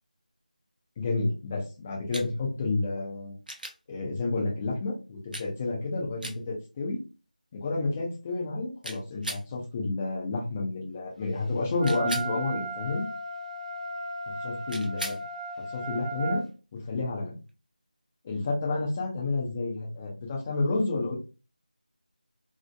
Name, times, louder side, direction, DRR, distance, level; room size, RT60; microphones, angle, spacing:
voice 1, 1.0-3.4 3.9-7.0 7.5-13.0 14.4-15.2 15.7-16.4 16.9-17.4 18.2-21.2, left 3 dB, 10° left, -2 dB, 0.3 m, -30 dB
sound 1, 2.1-2.3 3.5-3.8 5.3-5.5 6.2-6.4 8.8-9.5 11.8-12.3 14.7-15.2 17.5-17.6, right 1 dB, 85° right, 0.7 m, -37 dB
Wind instrument woodwind instrument, 11.8-16.4, right 3 dB, 45° right, 0.8 m, -35 dB
2.7 x 2.0 x 2.2 m, 0.31 s
figure-of-eight pair, 165°, 5 cm